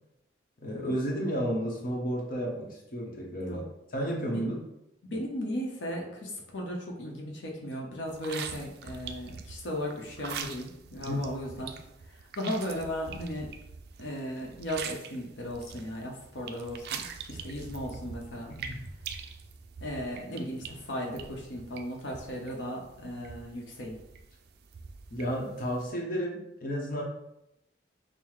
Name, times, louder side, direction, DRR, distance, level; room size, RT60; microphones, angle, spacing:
voice 1, 0.6-3.6 3.9-4.5 11.1-11.2 18.6-18.8 25.1-27.0, equal, 50° left, -2 dB, 0.8 m, -32 dB
voice 2, 5.1-11.7 12.4-13.5 14.0-18.5 19.8-24.0, equal, 80° left, -1 dB, 0.8 m, -36 dB
sound 1, 8.1-25.9, right 6 dB, 60° right, 0.3 m, -44 dB
5.6 x 2.0 x 3.1 m, 0.85 s
head